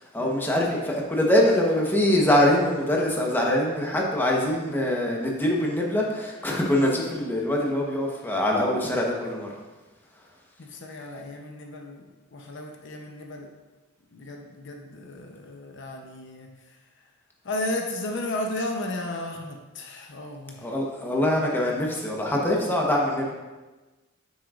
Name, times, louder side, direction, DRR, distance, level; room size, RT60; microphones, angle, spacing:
voice 1, 0.1-9.5 20.6-23.3, left 1 dB, 10° left, -2 dB, 1.0 m, -23 dB
voice 2, 10.6-13.5 14.1-16.6 17.4-20.7, left 1 dB, 60° left, 2 dB, 0.7 m, -34 dB
9.0 x 6.2 x 2.5 m, 1.2 s
head